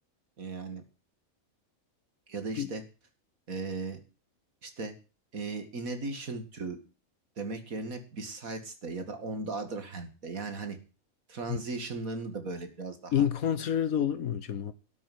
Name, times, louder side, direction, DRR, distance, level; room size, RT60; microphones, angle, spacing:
voice 1, 0.4-0.8 2.3-2.8 3.5-4.0 4.6-4.9 5.3-6.8 7.4-10.8 11.3-13.2, right 3 dB, 75° right, 2.6 m, -37 dB
voice 2, 13.1-14.7, left 9 dB, 75° left, 1.5 m, -28 dB
13.0 x 7.4 x 9.3 m
omnidirectional pair, 1.5 m